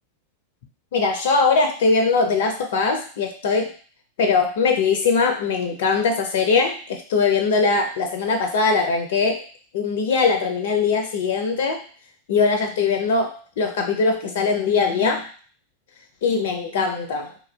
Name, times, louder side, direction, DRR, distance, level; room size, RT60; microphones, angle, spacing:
voice 1, 0.9-3.7 4.2-9.4 9.7-11.8 12.3-15.3 16.2-17.3, left 4 dB, 55° left, 5 dB, 0.4 m, -21 dB
3.1 x 2.2 x 2.3 m, 0.42 s
figure-of-eight pair, 90°, 0 cm